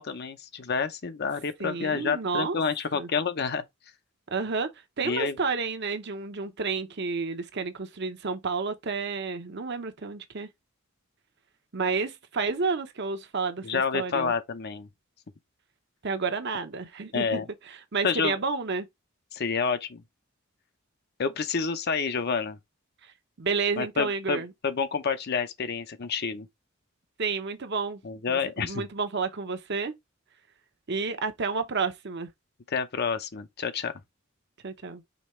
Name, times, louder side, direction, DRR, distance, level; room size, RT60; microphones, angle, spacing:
voice 1, 0.0-3.6 5.0-5.4 13.6-14.9 17.1-17.5 18.0-18.4 19.3-20.0 21.2-22.6 23.8-26.5 28.0-28.8 32.7-34.0, left 5 dB, 50° left, 0.6 m, -29 dB
voice 2, 1.6-2.6 2.9-3.1 4.3-4.7 5.0-10.5 11.7-14.3 16.0-17.4 17.7-18.9 23.4-24.5 27.2-28.0 28.3-29.9 30.9-32.3 34.6-35.0, right 4 dB, 55° right, 0.9 m, -30 dB
5.2 x 3.3 x 3.1 m
head